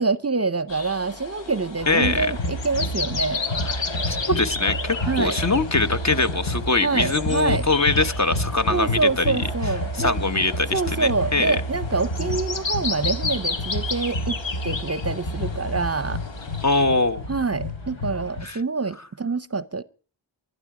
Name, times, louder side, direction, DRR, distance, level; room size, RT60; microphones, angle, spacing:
voice 1, 0.0-3.4 5.1-5.4 6.8-7.6 8.7-10.2 10.7-14.4 14.6-16.2 17.3-19.8, right 4 dB, 35° right, 0.7 m, -26 dB
sound 1, 0.7-16.8, left 4 dB, 70° left, 1.3 m, -33 dB
sound 2, 1.8-18.4, left 1 dB, 90° left, 2.3 m, -30 dB
voice 2, 1.9-2.3 3.6-9.3 9.9-11.6 16.6-17.2 18.4-18.6, left 3 dB, 35° left, 1.0 m, -23 dB
21.0 x 12.0 x 4.9 m
wide cardioid pair, 50°, 46 cm